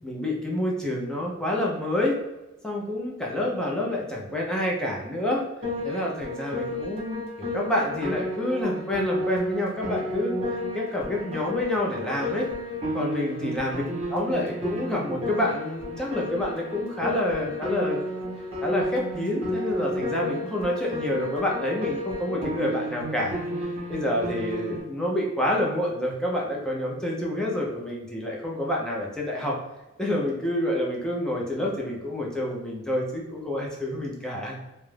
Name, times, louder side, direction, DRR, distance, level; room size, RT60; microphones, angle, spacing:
voice 1, 0.0-2.2 2.6-5.4 5.8-7.2 7.5-12.5 12.9-13.8 14.1-18.0 18.6-23.4 23.9-29.6 30.0-34.6, left 1 dB, 5° left, -3 dB, 0.5 m, -28 dB
Piano, 5.6-24.8, left 1 dB, 30° right, 0.8 m, -32 dB
2.3 x 2.0 x 3.1 m, 1.0 s
head